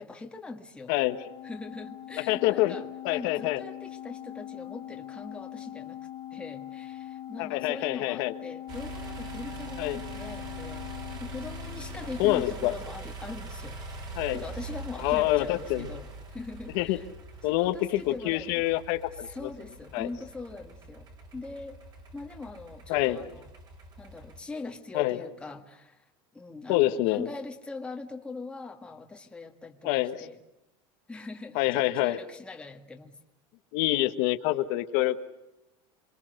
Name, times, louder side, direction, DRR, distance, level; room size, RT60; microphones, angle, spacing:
voice 1, 0.0-1.0 1.4-2.8 3.1-6.0 6.3-13.9 14.3-17.1 17.5-18.6 19.3-21.1 21.3-21.8 22.1-23.5 24.0-26.0 26.3-30.4 31.1-33.2, left 3 dB, 10° left, 3 dB, 1.7 m, -41 dB
voice 2, 0.9-1.3 2.3-2.7 3.0-3.6 7.4-8.3 9.8-10.0 12.2-12.7 14.1-14.4 15.0-15.9 16.7-17.0 17.4-19.5 19.9-20.1 22.9-23.2 24.9-25.3 26.7-27.3 29.8-30.3 31.5-32.2 33.7-35.2, left 16 dB, 65° left, 8 dB, 1.4 m, -26 dB
Organ, 1.0-12.3, left 12 dB, 35° left, 0.8 m, -42 dB
sound 1, 8.7-24.4, right 2 dB, 35° right, 4.2 m, -43 dB
28.0 x 22.5 x 6.6 m, 0.89 s
cardioid pair, 155°, 13 cm